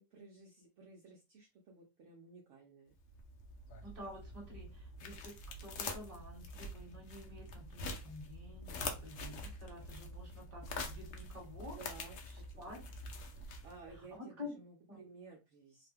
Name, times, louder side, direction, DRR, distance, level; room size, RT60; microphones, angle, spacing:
voice 1, 0.0-2.9 11.8-12.9 13.4-15.9, right 4 dB, 65° right, -1 dB, 0.8 m, -56 dB
sound 1, 3.0-14.0, left 2 dB, 70° left, 0.7 m, -46 dB
voice 2, 3.8-11.8 12.6-12.8 14.1-14.5 14.9-15.0, left 2 dB, 25° right, -1 dB, 1.3 m, -50 dB
2.9 x 2.2 x 3.3 m, 0.27 s
omnidirectional pair, 1.9 m